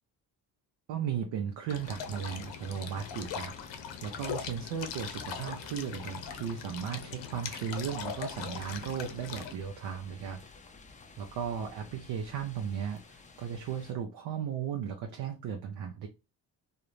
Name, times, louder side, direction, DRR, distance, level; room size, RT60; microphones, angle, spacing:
voice 1, 0.9-3.5 4.0-10.4 11.2-16.1, right 8 dB, 60° right, 0.6 m, -36 dB
sound 1, 1.7-9.5, left 7 dB, 65° left, 0.7 m, -40 dB
sound 2, 1.8-13.9, left 4 dB, 15° left, 0.4 m, -54 dB
2.3 x 2.1 x 3.0 m
hypercardioid pair, 50°, 48 cm